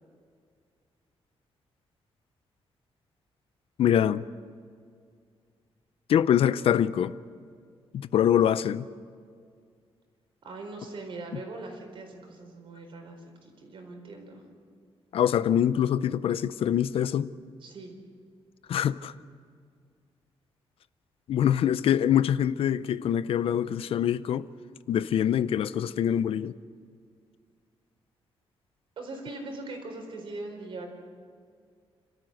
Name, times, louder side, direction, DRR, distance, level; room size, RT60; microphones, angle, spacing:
voice 1, 3.8-4.2 6.1-7.1 7.9-8.9 15.1-17.3 18.7-19.1 21.3-24.5 24.9-26.6, left 10 dB, 70° left, 0.5 m, -24 dB
voice 2, 10.4-14.4 17.6-17.9 29.0-30.9, right 2 dB, 60° right, 4.4 m, -41 dB
29.5 x 13.5 x 7.8 m
wide cardioid pair, 160°, 10 cm